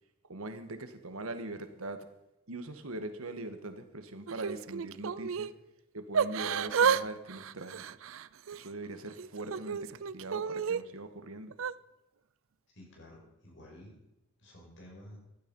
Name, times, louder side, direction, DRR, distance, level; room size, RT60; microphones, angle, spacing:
voice 1, 0.3-2.0 2.5-5.5 5.9-7.9 8.5-11.5, right 2 dB, 85° right, 8 dB, 1.6 m, -41 dB
Yell / Crying sobbing, 4.3-5.5 6.1-7.0 7.3-8.7 9.2-10.8 11.5-11.7, right 6 dB, 70° right, 0.5 m, -31 dB
voice 2, 12.7-14.0 14.4-15.2, left 1 dB, 60° left, -1 dB, 5.9 m, -52 dB
15.0 x 11.5 x 5.5 m, 0.91 s
head